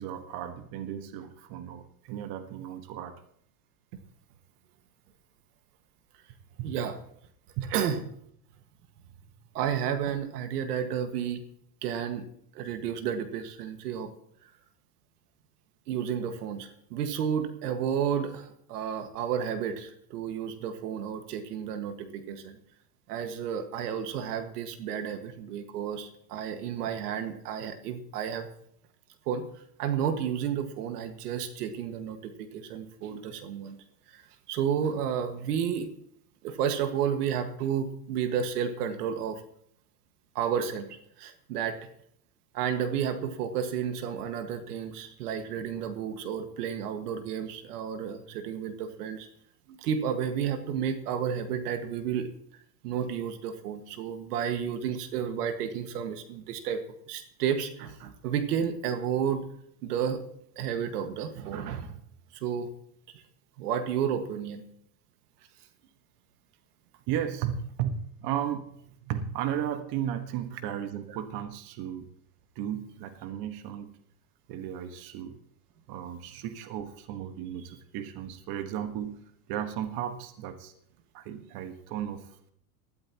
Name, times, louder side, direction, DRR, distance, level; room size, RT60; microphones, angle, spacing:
voice 1, 0.0-3.2 6.6-6.7 7.6-7.7 67.1-68.7 69.0-72.1 72.5-74.0 74.5-75.4 75.9-80.7 81.1-82.5, right 10 dB, 50° right, 8 dB, 1.5 m, -35 dB
voice 2, 6.6-7.0 7.7-8.0 9.5-11.4 11.8-12.3 12.5-14.1 15.9-22.6 23.1-28.5 29.3-29.4 29.8-33.8 34.1-34.2 34.5-35.9 36.4-39.4 40.4-40.9 41.2-41.8 42.5-49.3 49.7-52.3 52.8-59.4 59.8-60.2 60.6-62.0 62.3-62.7 63.1-63.2 63.6-64.6, right 8 dB, 75° right, 8 dB, 1.8 m, -31 dB
19.5 x 13.5 x 3.0 m, 0.69 s
supercardioid pair, 115°, 47 cm